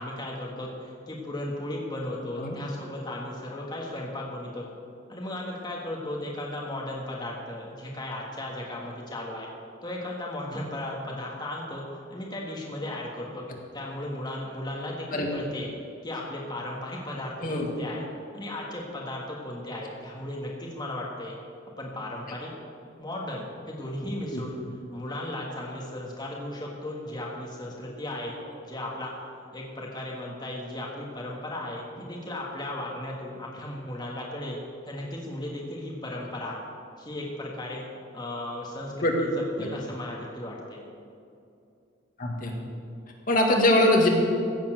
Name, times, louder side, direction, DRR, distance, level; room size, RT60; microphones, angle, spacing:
voice 1, 0.0-4.7 5.1-9.5 9.8-11.8 12.1-13.5 13.7-15.7 16.0-18.0 18.3-21.4 21.8-22.5 23.0-24.6 24.9-29.1 29.5-34.6 34.8-36.6 37.0-37.8 38.1-40.8, left 1 dB, 20° left, -3 dB, 1.6 m, -36 dB
voice 2, 42.2-42.5 43.3-44.1, left 1 dB, 45° left, 0 dB, 1.8 m, -22 dB
16.0 x 7.3 x 7.7 m, 2.6 s
head